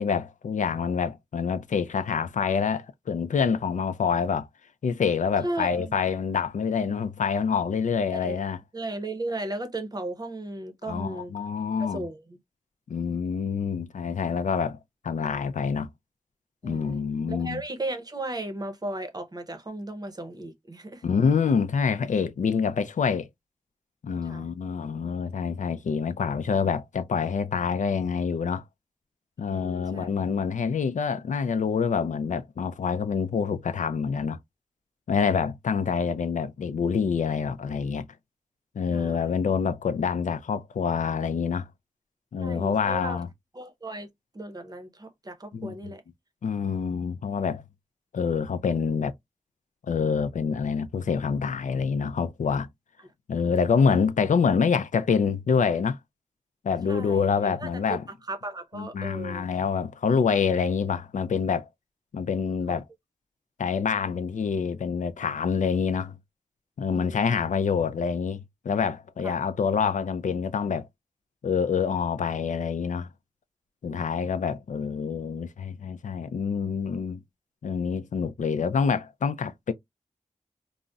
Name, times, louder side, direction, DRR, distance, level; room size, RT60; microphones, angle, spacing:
voice 1, 0.0-4.5 4.8-8.6 10.9-12.1 12.9-14.8 15.0-15.9 16.6-17.6 21.0-23.3 24.0-28.6 29.4-34.4 35.1-38.1 38.8-41.7 42.3-43.3 45.5-45.7 46.4-47.6 48.1-49.1 49.9-52.7 53.3-56.0 56.6-58.0 58.7-61.7 62.1-62.8 63.6-66.2 66.8-70.9 71.4-73.1 73.8-77.2 77.6-79.7, left 6 dB, 85° left, 0.4 m, -26 dB
voice 2, 5.4-6.0 8.1-8.5 8.7-11.3 11.9-12.4 16.6-17.0 17.3-21.1 24.2-24.5 29.4-30.1 38.9-39.4 42.4-43.2 43.5-44.1 44.3-46.0 56.9-58.0 58.3-59.5 62.7-62.8 66.9-67.5 69.2-69.4 73.8-74.2, right 2 dB, 30° right, 0.6 m, -36 dB
3.8 x 2.0 x 2.3 m
wide cardioid pair, 95°, 13 cm